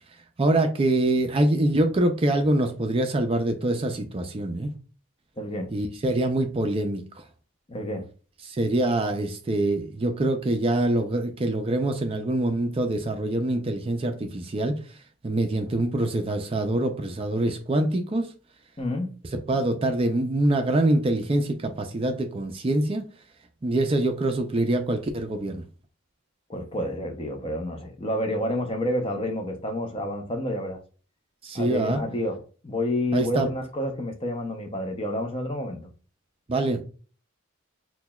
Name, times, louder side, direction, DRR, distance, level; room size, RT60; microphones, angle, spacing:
voice 1, 0.4-4.7 5.7-7.0 8.4-14.7 15.2-18.3 19.3-23.0 23.6-25.6 31.4-32.0 33.1-33.5 36.5-36.8, right 1 dB, 25° right, 0.4 m, -24 dB
voice 2, 5.4-5.7 7.7-8.1 18.8-19.1 26.5-30.8 31.5-35.9, left 1 dB, 25° left, 0.5 m, -29 dB
5.9 x 2.2 x 2.2 m
head